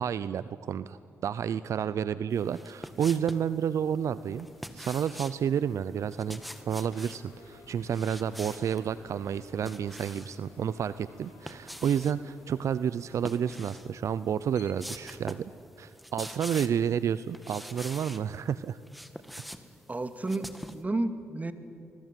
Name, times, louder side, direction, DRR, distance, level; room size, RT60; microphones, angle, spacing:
voice 1, 0.0-4.5 4.7-6.4 6.7-15.5 15.8-18.8, right 8 dB, 65° right, 15 dB, 0.6 m, -30 dB
sound 1, 2.5-3.5 4.4-5.4 6.1-7.2 7.9-8.8 9.3-10.4 11.2-12.2 13.1-13.9 14.3-14.4 14.8-15.5 15.8-16.9 17.3-18.2 18.7-20.8, equal, ahead, 2.0 m, -44 dB
sound 2, 3.7-15.3, left 2 dB, 85° left, 6.4 m, -55 dB
voice 2, 19.9-21.5, right 2 dB, 30° right, 9 dB, 2.4 m, -32 dB
25.0 x 21.5 x 9.3 m, 2.4 s
supercardioid pair, 50°, 6 cm